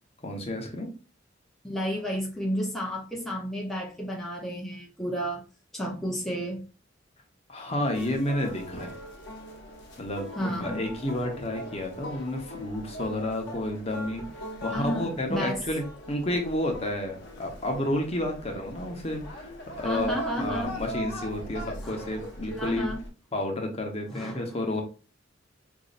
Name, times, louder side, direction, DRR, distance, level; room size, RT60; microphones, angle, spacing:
voice 1, 0.2-0.9 7.5-9.0 10.0-20.1 20.4-22.9 23.3-24.8, left 1 dB, 35° left, 3 dB, 0.9 m, -31 dB
voice 2, 1.6-5.4 5.7-6.6 10.4-10.8 14.7-15.6 19.8-20.7 21.8-22.0 22.6-23.0 24.1-24.4, equal, ahead, -2 dB, 0.7 m, -31 dB
sound 1, 7.9-23.1, equal, 65° left, 1.0 m, -40 dB
5.1 x 2.7 x 2.5 m, 0.34 s
head